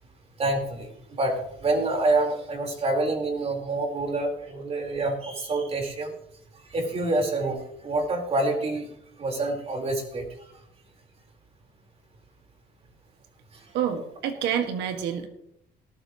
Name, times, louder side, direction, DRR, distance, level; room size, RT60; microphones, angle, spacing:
voice 1, 0.4-6.1 6.7-8.9 9.2-10.2, right 2 dB, 35° right, 1 dB, 4.6 m, -27 dB
voice 2, 13.7-15.3, right 9 dB, 85° right, 5 dB, 2.0 m, -28 dB
19.5 x 12.5 x 3.2 m, 0.73 s
cardioid pair, 110°, 17 cm